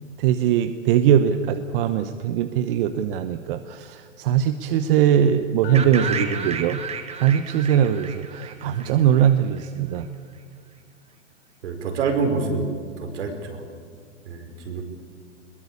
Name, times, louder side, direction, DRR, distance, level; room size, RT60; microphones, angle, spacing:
voice 1, 0.0-6.9 7.2-10.1, right 9 dB, 45° right, 9 dB, 1.1 m, -21 dB
sound 1, 5.6-7.1, left 17 dB, 40° left, 0.7 m, -32 dB
sound 2, 5.7-9.6, right 7 dB, 15° right, 1.6 m, -32 dB
voice 2, 11.6-12.7 13.0-13.6 14.2-14.8, right 4 dB, 70° right, 4 dB, 5.0 m, -26 dB
21.5 x 21.5 x 8.6 m, 2.1 s
hypercardioid pair, 130°, 37 cm